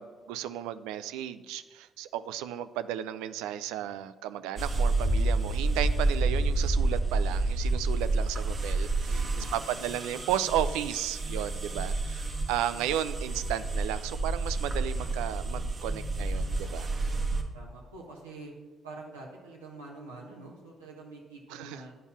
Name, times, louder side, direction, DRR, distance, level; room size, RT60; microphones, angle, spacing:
voice 1, 0.0-12.2 12.5-16.9 21.5-21.8, right 11 dB, 75° right, 13 dB, 0.3 m, -34 dB
sound 1, 4.6-17.4, right 2 dB, 45° right, 1.3 m, -29 dB
voice 2, 9.0-9.6 17.5-18.5 18.8-22.0, right 3 dB, 90° right, -4 dB, 1.2 m, -46 dB
8.7 x 5.4 x 7.0 m, 1.4 s
hypercardioid pair, 45°, 0 cm